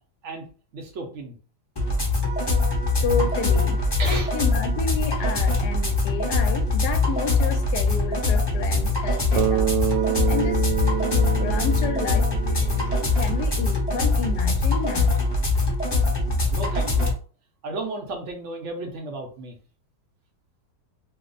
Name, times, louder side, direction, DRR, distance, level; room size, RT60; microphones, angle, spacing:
voice 1, 0.7-1.3 4.0-4.3 16.5-17.1 17.6-19.6, right 2 dB, 55° right, 0.8 m, -33 dB
sound 1, 1.8-17.1, left 3 dB, 25° left, 0.6 m, -23 dB
voice 2, 3.0-9.7 10.2-15.2, left 5 dB, 70° left, 1.1 m, -31 dB
Bass guitar, 9.4-13.4, right 11 dB, 85° right, 1.2 m, -27 dB
2.9 x 2.0 x 3.9 m
omnidirectional pair, 1.9 m